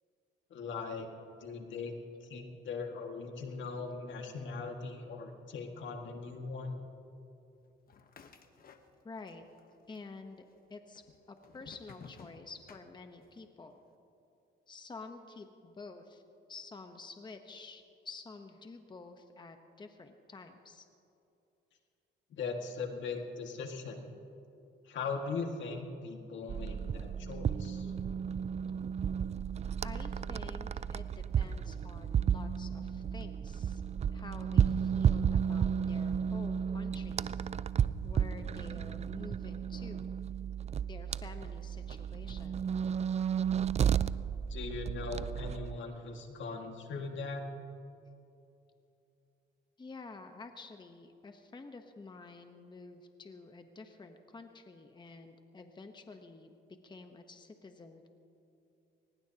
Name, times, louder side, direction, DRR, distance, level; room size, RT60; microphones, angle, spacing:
voice 1, 0.5-1.1 1.4-1.9 2.2-6.8 22.3-24.1 24.8-27.9 44.5-47.4, left 4 dB, 70° left, 3 dB, 1.9 m, -40 dB
moving junk debris to open blocked apartment back door wood, 7.9-9.3 9.6-10.3 11.0-13.4, left 5 dB, 45° left, 1.2 m, -55 dB
voice 2, 9.0-9.4 9.9-13.8 14.7-16.2 16.5-20.8 29.8-33.8 34.1-37.3 38.0-40.1 40.8-42.7 49.8-56.5 56.8-58.1, left 3 dB, 20° left, 6 dB, 1.0 m, -50 dB
sound 1, 26.5-45.8, right 8 dB, 35° right, 0.4 m, -33 dB
22.5 x 20.0 x 2.9 m, 2.8 s
cardioid pair, 90°, 20 cm